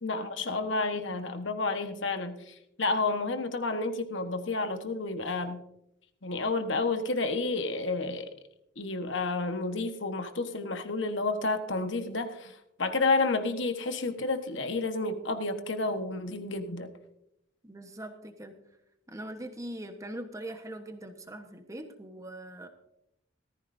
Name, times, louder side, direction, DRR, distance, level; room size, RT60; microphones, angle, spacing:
voice 1, 0.0-5.6 6.2-8.3 8.8-16.9, left 3 dB, 60° left, 7 dB, 1.3 m, -30 dB
voice 2, 17.6-18.6 19.1-22.7, right 1 dB, 15° right, 6 dB, 1.2 m, -41 dB
18.0 x 14.5 x 2.7 m, 0.82 s
head